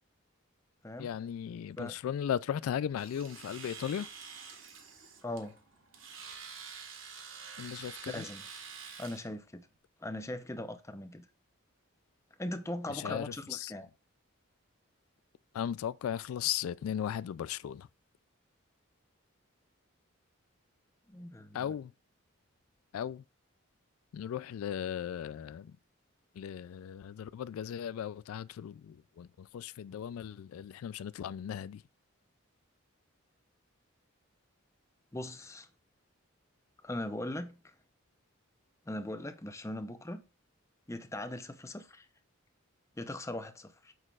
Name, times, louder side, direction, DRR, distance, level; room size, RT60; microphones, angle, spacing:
voice 1, 1.0-4.1 7.6-8.2 12.9-13.7 15.5-17.9 21.5-21.9 22.9-23.2 24.1-25.7 26.4-31.8, left 9 dB, 85° left, 0.3 m, -37 dB
Domestic sounds home sounds, 3.0-9.3, right 6 dB, 65° right, 1.6 m, -48 dB
voice 2, 5.2-5.6 8.1-8.5 9.0-9.7 10.0-11.3 12.4-13.9 21.1-21.7 35.1-35.7 36.8-37.6 38.9-40.2 40.9-42.1 43.0-43.9, left 1 dB, 15° left, 0.7 m, -40 dB
8.9 x 6.4 x 2.4 m
head